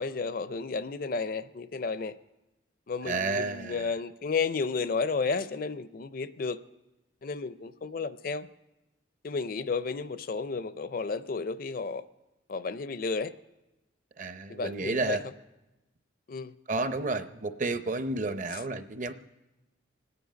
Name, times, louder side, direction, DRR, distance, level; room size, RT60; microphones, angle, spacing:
voice 1, 0.0-2.1 2.9-6.6 7.2-8.5 9.2-12.0 12.5-13.3 14.5-15.3 16.3-16.5 18.5-18.6, left 4 dB, 45° left, 13 dB, 0.5 m, -32 dB
voice 2, 3.0-3.9 14.2-15.2 16.7-19.1, right 3 dB, 40° right, 10 dB, 0.6 m, -31 dB
26.0 x 9.7 x 5.1 m, 1.0 s
head